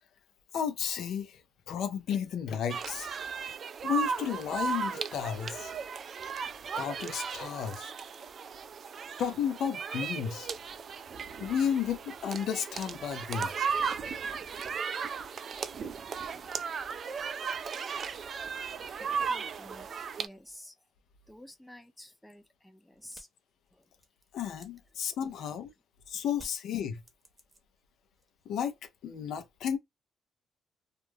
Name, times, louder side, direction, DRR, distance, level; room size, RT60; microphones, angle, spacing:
voice 1, 0.5-1.4 1.7-3.1 3.8-5.7 6.7-7.9 9.2-10.5 11.4-13.5 24.3-25.7 26.1-27.0 28.5-28.8 29.0-29.8, left 8 dB, 75° left, 0.5 m, -33 dB
sound 1, 2.7-20.3, right 6 dB, 50° right, 0.3 m, -36 dB
voice 2, 19.0-19.9 20.2-20.7 21.3-23.3 23.7-23.9 26.1-26.2, left 1 dB, 5° left, 0.5 m, -51 dB
sound 2, 23.0-25.7 26.3-27.9 28.2-28.7, right 1 dB, 20° right, 0.8 m, -56 dB
2.3 x 2.0 x 3.2 m
cardioid pair, 90°, 0 cm